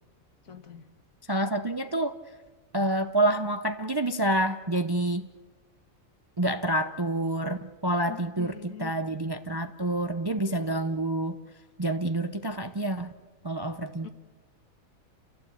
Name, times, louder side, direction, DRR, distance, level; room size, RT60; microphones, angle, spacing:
voice 1, 0.4-0.9 8.1-9.0 14.0-14.1, left 10 dB, 75° left, 9 dB, 1.8 m, -43 dB
voice 2, 1.3-2.2 2.7-5.3 6.4-11.4 11.8-13.1 13.4-14.1, right 1 dB, 30° right, 9 dB, 0.5 m, -28 dB
29.5 x 15.5 x 8.5 m, 1.4 s
omnidirectional pair, 1.5 m